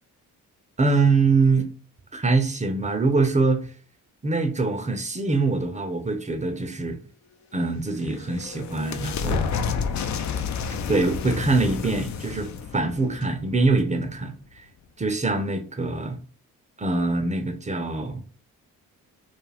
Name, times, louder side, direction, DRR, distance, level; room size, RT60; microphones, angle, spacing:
voice 1, 0.8-1.7 2.1-3.7 4.2-7.0 7.5-9.5 10.9-14.3 15.0-16.2 16.8-18.2, right 3 dB, 15° right, 0.5 m, -23 dB
sound 1, 7.8-14.2, left 6 dB, 45° left, 0.4 m, -30 dB
2.4 x 2.3 x 3.2 m
hypercardioid pair, 40°, 43 cm